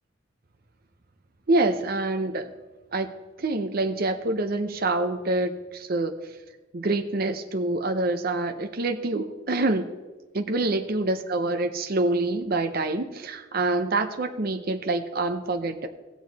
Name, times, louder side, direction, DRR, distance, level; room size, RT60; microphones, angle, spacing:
voice 1, 1.5-2.5 2.9-3.1 3.4-6.1 6.7-9.9 10.3-15.9, right 2 dB, 55° right, 7 dB, 0.7 m, -26 dB
16.5 x 7.1 x 4.1 m, 1.2 s
head